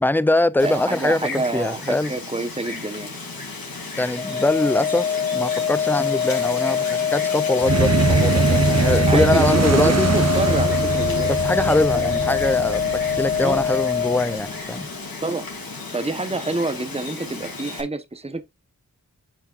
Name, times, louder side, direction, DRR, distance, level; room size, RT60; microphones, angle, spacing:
voice 1, 0.0-2.1 4.0-10.1 11.3-14.9, left 2 dB, 5° left, 0.4 m, -23 dB
Wind, 0.6-17.8, left 3 dB, 75° left, 2.8 m, -33 dB
voice 2, 0.6-3.2 9.1-11.3 13.4-13.6 15.2-15.5 15.9-18.4, right 2 dB, 15° right, 1.0 m, -28 dB
Organ, 4.2-14.8, left 8 dB, 20° left, 2.3 m, -24 dB
sound 1, 7.6-14.2, right 4 dB, 45° right, 1.1 m, -22 dB
8.4 x 5.8 x 2.4 m
wide cardioid pair, 50°, 35 cm